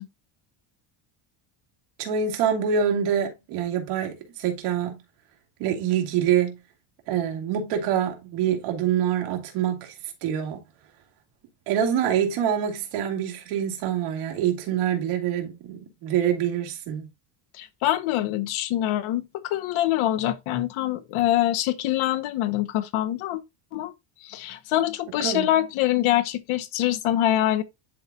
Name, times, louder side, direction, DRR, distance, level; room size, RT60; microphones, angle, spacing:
voice 1, 2.0-5.0 5.6-6.6 7.1-9.9 10.2-10.6 11.7-17.1 25.2-25.5, right 8 dB, 90° right, 2.3 m, -25 dB
voice 2, 17.5-23.4 23.7-23.9 24.2-27.6, left 13 dB, 70° left, 1.0 m, -24 dB
11.0 x 4.0 x 2.3 m
cardioid pair, 165°, 50 cm